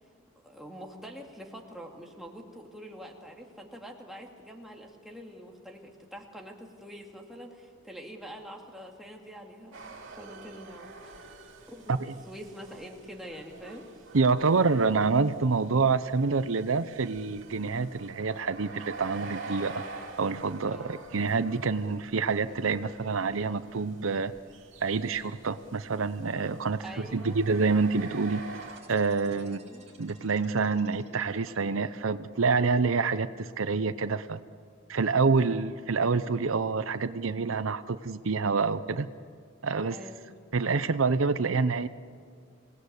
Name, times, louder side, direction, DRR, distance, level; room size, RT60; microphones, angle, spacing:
voice 1, 0.4-11.3 11.7-13.9 20.7-21.0 26.8-27.4 29.3-29.8 35.3-35.7 39.8-40.4, equal, ahead, 0 dB, 2.3 m, -45 dB
sound 1, 9.7-28.8, right 3 dB, 65° right, 3.0 m, -47 dB
voice 2, 14.1-19.8 20.2-24.3 24.8-26.8 27.1-28.4 28.9-29.6 30.0-34.4 34.9-39.1 39.6-40.0 40.5-41.9, right 4 dB, 85° right, 13 dB, 0.7 m, -27 dB
sound 2, 28.5-32.0, right 4 dB, 35° right, 5.2 m, -57 dB
26.5 x 18.5 x 8.2 m, 2.1 s
head